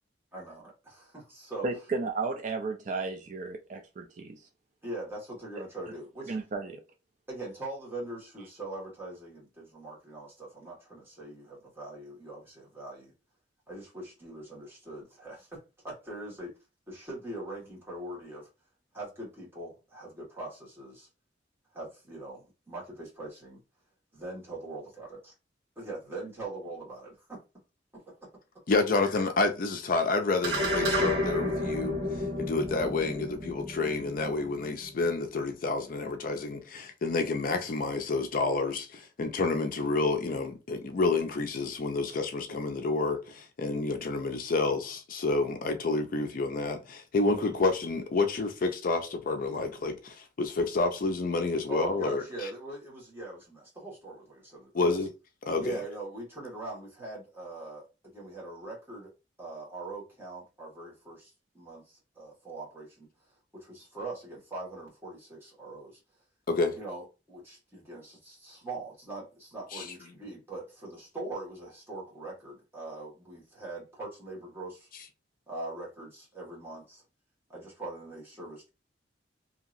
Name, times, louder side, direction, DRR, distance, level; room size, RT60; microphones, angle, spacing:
voice 1, 0.3-1.7 4.8-6.3 7.3-13.1 13.7-16.5 16.9-18.5 18.9-21.1 21.7-23.6 24.2-25.3 25.8-27.4 27.9-28.0 51.7-55.0 55.6-59.1 59.4-63.1 63.5-66.0 66.7-74.9 75.5-77.0 77.5-78.7, right 2 dB, 15° right, 1.5 m, -42 dB
voice 2, 1.6-4.5 6.3-6.8, right 4 dB, 45° right, 0.4 m, -34 dB
voice 3, 28.7-32.0 32.4-52.5 54.7-55.1 55.4-55.8 66.5-66.8 69.7-69.8, left 3 dB, 50° left, 0.4 m, -29 dB
sound 1, 30.4-35.1, left 1 dB, 65° right, 1.2 m, -31 dB
2.8 x 2.7 x 2.5 m
head